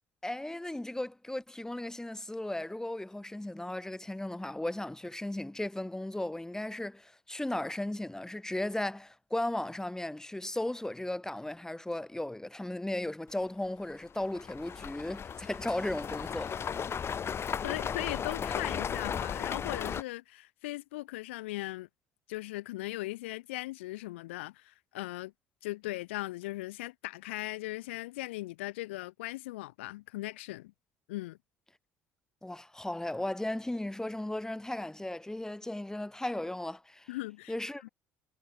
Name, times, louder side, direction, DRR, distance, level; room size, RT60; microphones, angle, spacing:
voice 1, 0.2-16.5 32.4-37.1 37.5-37.9, left 1 dB, 10° left, 7.5 m, -36 dB
sound 1, 13.3-13.4 13.9-20.0, left 7 dB, 40° left, 1.8 m, -36 dB
voice 2, 17.6-21.9 22.3-25.3 25.6-30.7 31.1-31.4 37.1-37.6 37.8-37.9, left 19 dB, 85° left, 7.0 m, -38 dB
hypercardioid pair, 65°, 6 cm